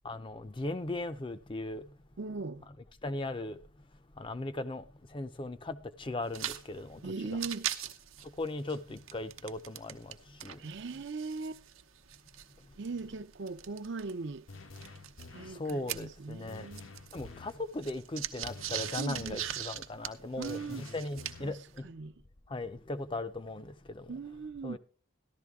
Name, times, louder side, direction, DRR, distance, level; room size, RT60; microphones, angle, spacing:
voice 1, 0.0-1.8 3.0-3.6 4.2-4.8 5.1-7.1 8.4-10.2 10.4-10.6 15.5-16.7 17.1-21.9 22.5-24.1 24.6-24.8, left 2 dB, 25° left, 0.5 m, -38 dB
voice 2, 2.2-2.7 7.0-7.7 10.6-11.6 12.8-14.5 15.3-16.9 19.0-19.4 20.4-20.9 21.4-21.6 21.8-22.1 24.1-24.8, right 4 dB, 60° right, 0.5 m, -39 dB
sound 1, 6.3-6.6 6.9-7.0 7.3-10.2 10.4-14.1 14.8-16.5 16.7-21.6, right 11 dB, 90° right, 0.9 m, -40 dB
sound 2, 14.5-15.7 16.5-17.6 18.4-19.7 20.5-21.7, left 3 dB, 80° left, 1.1 m, -49 dB
14.0 x 11.5 x 3.5 m
head